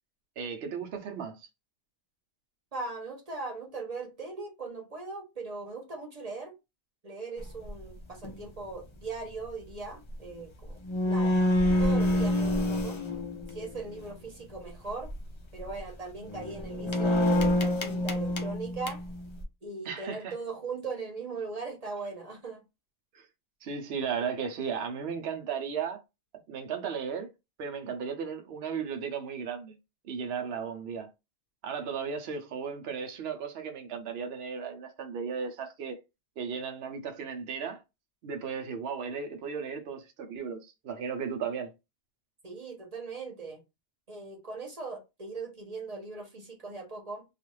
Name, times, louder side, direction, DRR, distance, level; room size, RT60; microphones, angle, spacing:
voice 1, 0.4-1.5 19.8-20.3 23.1-23.3 23.6-26.0 26.5-27.3 27.6-29.8 30.0-31.1 31.6-36.0 36.4-37.8 38.2-41.7, right 6 dB, 75° right, 0.9 m, -35 dB
voice 2, 2.7-6.5 7.0-10.8 11.0-11.4 11.8-13.0 13.5-15.1 15.5-19.0 19.6-22.6 42.4-43.6 44.1-47.2, right 4 dB, 40° right, 0.9 m, -39 dB
sound 1, 7.4-7.7 8.2-8.5 10.4-10.5 10.7-14.0 14.9-15.2 15.6-15.8 16.2-19.4, left 1 dB, 40° left, 0.4 m, -27 dB
2.4 x 2.4 x 3.0 m
omnidirectional pair, 1.1 m